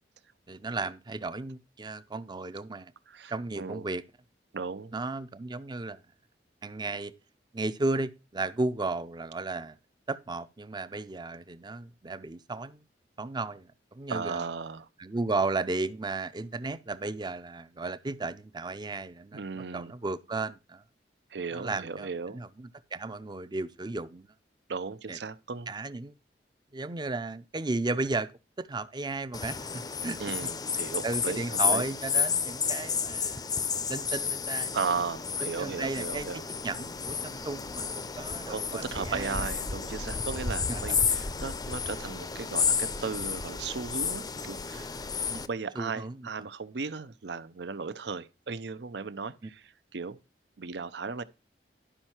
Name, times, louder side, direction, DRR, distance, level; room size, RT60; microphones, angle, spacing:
voice 1, 0.5-2.9 3.3-4.0 4.9-6.0 6.6-7.1 7.5-9.8 10.1-12.8 13.2-14.5 15.0-20.8 21.5-24.3 25.1-25.2 25.7-26.1 26.7-28.3 28.6-30.4 31.0-33.4 33.9-34.8 35.4-39.5 40.7-40.8 45.3-45.4 45.8-46.5 49.4-49.5, right 3 dB, 25° right, 0.6 m, -34 dB
voice 2, 3.1-3.9 4.5-4.9 14.1-14.9 19.3-19.9 21.3-22.4 24.7-25.7 30.2-31.8 34.7-36.4 38.5-45.0 45.5-49.6 49.9-50.2 50.6-51.2, right 5 dB, 70° right, 0.6 m, -36 dB
sound 1, 29.3-45.5, left 6 dB, 20° left, 0.5 m, -31 dB
11.5 x 5.5 x 4.4 m
head